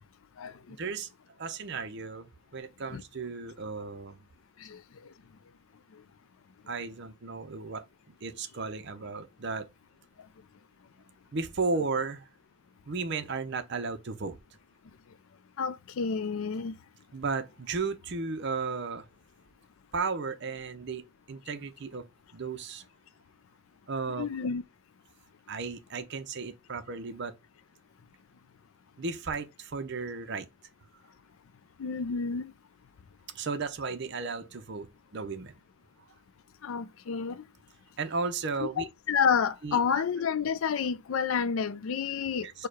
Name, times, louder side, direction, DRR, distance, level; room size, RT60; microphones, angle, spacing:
voice 1, 0.7-1.1 1.4-4.2 6.7-7.9 8.2-9.7 11.3-12.3 12.9-14.4 17.1-19.1 19.9-22.1 22.3-22.8 23.9-24.3 25.5-27.3 29.0-30.5 33.3-35.5 38.0-38.9 39.6-40.0 42.4-42.5, right 4 dB, 55° right, 0.6 m, -34 dB
voice 2, 15.6-16.8 24.2-24.6 31.8-32.5 36.6-37.4 38.6-42.7, left 6 dB, 75° left, 0.4 m, -29 dB
4.6 x 2.2 x 4.7 m
head